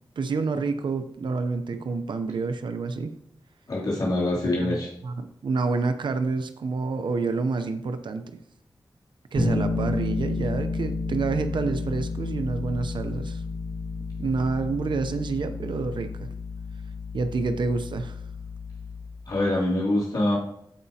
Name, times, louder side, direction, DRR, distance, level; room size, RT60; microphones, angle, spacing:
voice 1, 0.2-3.1 4.6-4.7 5.0-8.4 9.3-13.4 14.2-16.3 17.1-18.2, right 4 dB, 75° right, 8 dB, 0.6 m, -28 dB
voice 2, 3.7-4.9 19.3-20.4, left 1 dB, 55° left, -6 dB, 2.6 m, -24 dB
Bass guitar, 9.4-19.2, left 3 dB, 35° left, 2.4 m, -31 dB
14.0 x 5.0 x 2.8 m, 0.73 s
wide cardioid pair, 90°, 8 cm